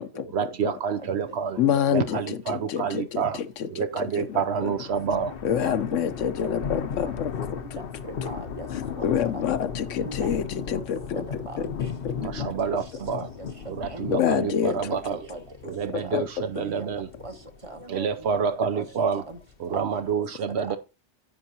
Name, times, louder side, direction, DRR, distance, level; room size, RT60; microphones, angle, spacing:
voice 1, 0.3-1.6 1.9-3.4 3.7-5.3 12.2-13.3 13.6-15.3 15.6-17.1 17.9-19.3 19.6-20.8, right 6 dB, 65° right, 0.9 m, -28 dB
voice 2, 1.6-4.7 5.4-7.3 9.0-11.3 12.0-12.3 14.1-14.7 15.9-16.3, left 8 dB, 85° left, 1.1 m, -27 dB
sound 1, 4.2-20.1, left 7 dB, 55° left, 0.8 m, -37 dB
voice 3, 5.6-6.3 7.0-7.1 8.0-8.7 9.0-9.1 9.3-9.5 10.0-10.3 11.1-11.8 12.2-12.5 13.1-13.2 13.9-14.1 14.5-14.8 15.0-15.7 16.1-16.2 16.5-16.9 17.2-17.3 17.6-18.4 18.7-18.9 19.3-19.4 19.7-19.8 20.7-20.8, right 2 dB, 30° right, 1.0 m, -39 dB
9.9 x 7.7 x 2.8 m
omnidirectional pair, 1.2 m